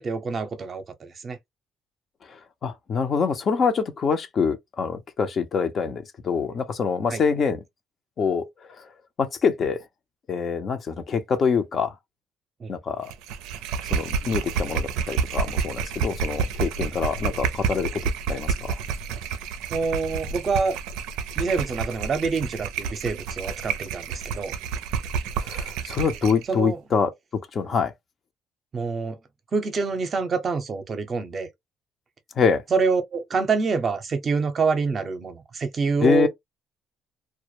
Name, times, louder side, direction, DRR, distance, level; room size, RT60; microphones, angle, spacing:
voice 1, 0.0-1.4 7.1-7.2 12.6-12.7 19.7-20.8 21.4-24.5 26.5-26.8 28.7-29.2 29.5-31.5 32.7-36.3, right 4 dB, 40° right, 0.6 m, -26 dB
voice 2, 2.6-7.6 8.2-8.5 9.2-9.8 10.3-11.9 12.7-13.1 13.9-18.7 25.4-27.1 27.5-27.9 32.4-32.6 36.0-36.3, left 5 dB, 45° left, 0.6 m, -25 dB
sound 1, 13.1-26.4, right 6 dB, 85° right, 0.4 m, -29 dB
2.2 x 2.0 x 3.0 m
cardioid pair, 95°, 0 cm